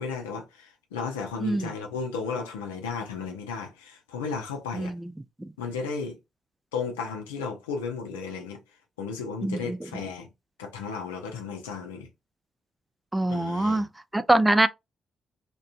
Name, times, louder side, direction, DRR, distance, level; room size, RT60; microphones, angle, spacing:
voice 1, 0.0-4.9 5.6-6.2 6.7-8.6 9.0-10.3 10.6-12.1 13.3-13.8, left 5 dB, 85° left, 0.5 m, -34 dB
voice 2, 4.7-5.1 9.4-9.8 13.1-13.9 14.1-14.7, right 1 dB, 15° right, 0.4 m, -23 dB
2.4 x 2.2 x 2.2 m
hypercardioid pair, 40°, 0 cm